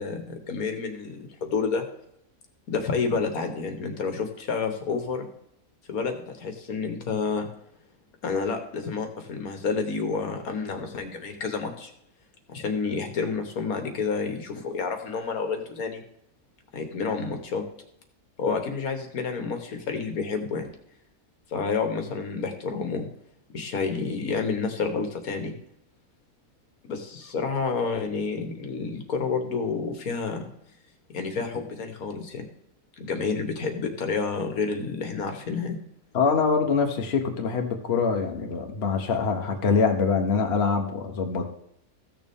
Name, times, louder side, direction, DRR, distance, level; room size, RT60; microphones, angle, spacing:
voice 1, 0.0-1.9 2.7-5.3 5.9-7.5 8.2-11.9 12.5-16.0 16.7-17.6 18.4-20.7 21.5-23.1 23.5-25.5 26.9-30.5 31.1-32.4 33.0-35.8, left 5 dB, 80° left, 5 dB, 1.7 m, -29 dB
voice 2, 36.1-41.5, left 5 dB, 45° left, 3 dB, 1.3 m, -24 dB
14.5 x 6.6 x 3.6 m, 0.74 s
omnidirectional pair, 1.5 m